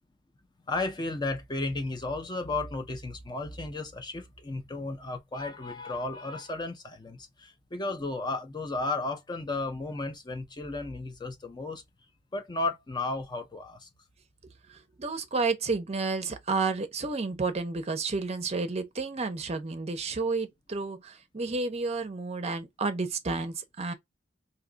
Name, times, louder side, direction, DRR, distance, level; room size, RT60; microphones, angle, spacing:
voice 1, 0.7-11.8 12.3-13.9, left 2 dB, 25° left, 0.5 m, -34 dB
voice 2, 14.7-23.9, right 3 dB, 35° right, 0.6 m, -31 dB
2.7 x 2.3 x 3.8 m
head